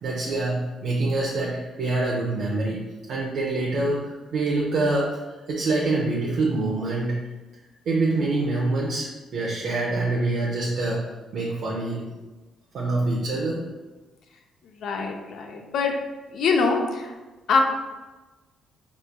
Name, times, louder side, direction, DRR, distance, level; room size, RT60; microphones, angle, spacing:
voice 1, 0.0-2.8 3.1-7.2 7.9-11.0 11.3-12.0 12.7-13.6, right 2 dB, 70° right, -4 dB, 0.7 m, -25 dB
voice 2, 14.8-15.9 16.3-17.1 17.5-17.6, left 4 dB, 75° left, 3 dB, 0.6 m, -23 dB
5.2 x 3.1 x 2.2 m, 1.2 s
cardioid pair, 90°, 0 cm